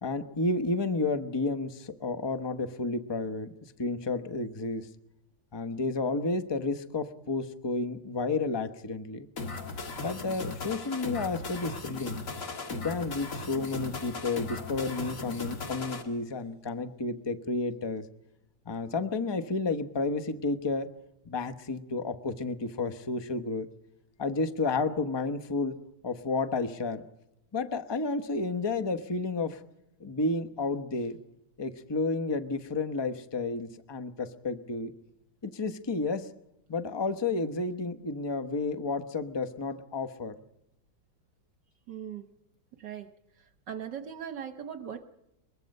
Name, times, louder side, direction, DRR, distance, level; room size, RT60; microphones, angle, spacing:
voice 1, 0.0-3.5 3.8-4.9 5.5-9.3 10.0-12.2 12.7-18.1 18.6-20.9 21.2-23.7 24.2-25.8 26.0-27.0 27.5-29.6 30.0-31.2 31.6-34.9 35.4-36.3 36.7-40.4, left 3 dB, 25° left, 10 dB, 0.6 m, -31 dB
sound 1, 9.4-16.0, left 3 dB, 40° left, 2.4 m, -37 dB
sound 2, 14.0-16.6, left 1 dB, 80° left, 5.5 m, -60 dB
voice 2, 41.9-42.3 42.8-43.1 43.4-45.0, right 8 dB, 65° right, 9 dB, 1.4 m, -39 dB
22.5 x 22.0 x 5.4 m, 0.86 s
omnidirectional pair, 2.2 m